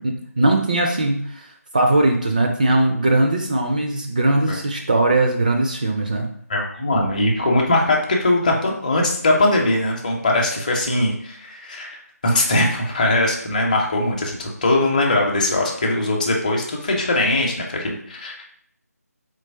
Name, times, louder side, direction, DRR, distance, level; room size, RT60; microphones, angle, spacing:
voice 1, 0.0-1.5 1.7-6.3, right 2 dB, 30° right, 3 dB, 0.4 m, -19 dB
voice 2, 6.5-12.0 12.2-18.4, left 2 dB, 30° left, -1 dB, 0.7 m, -20 dB
3.8 x 3.1 x 4.1 m, 0.62 s
figure-of-eight pair, 160°, 9 cm